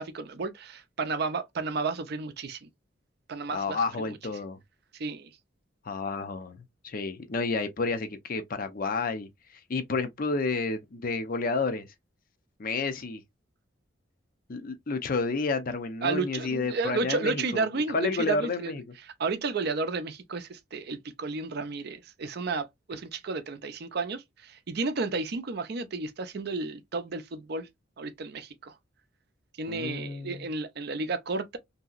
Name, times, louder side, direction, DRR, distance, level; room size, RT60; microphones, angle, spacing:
voice 1, 0.0-2.7 3.3-3.8 4.1-4.2 4.9-5.3 16.0-18.7 19.2-27.7 28.0-28.7 29.6-31.6, right 4 dB, 55° right, 0.5 m, -32 dB
voice 2, 3.5-4.6 5.8-9.3 9.7-11.9 12.6-13.2 14.5-17.6 17.9-18.8 29.7-30.5, left 3 dB, 45° left, 0.5 m, -30 dB
2.9 x 2.7 x 2.4 m
head